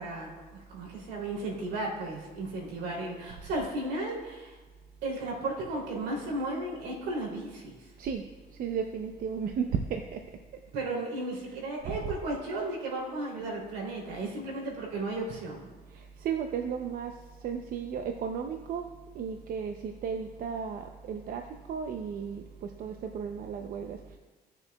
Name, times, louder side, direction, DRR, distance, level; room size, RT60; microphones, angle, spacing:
voice 1, 0.0-4.6 5.0-7.8 10.7-15.7, right 2 dB, 85° right, -2 dB, 3.0 m, -34 dB
voice 2, 8.6-10.2 11.5-11.6 11.9-12.1 15.9-18.9 19.1-24.2, right 7 dB, 55° right, 4 dB, 0.6 m, -34 dB
17.0 x 6.9 x 2.3 m, 1.3 s
cardioid pair, 110°, 17 cm